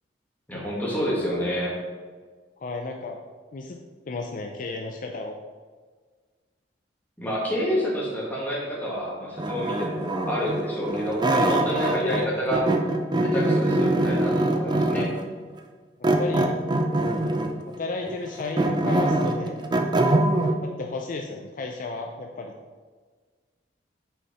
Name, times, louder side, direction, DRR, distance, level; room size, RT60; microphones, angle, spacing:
voice 1, 0.5-1.7 7.2-12.7 13.2-15.1, equal, 10° left, -6 dB, 1.8 m, -28 dB
voice 2, 2.6-3.2 3.5-3.8 4.1-5.3 12.0-12.4 16.2-16.6 17.7-19.6 20.6-22.5, left 3 dB, 50° left, 2 dB, 0.4 m, -33 dB
sound 1, 9.4-12.2 12.5-15.2 16.0-17.6 18.1-20.6, right 1 dB, 25° right, 0.5 m, -23 dB
5.6 x 4.6 x 4.2 m, 1.5 s
head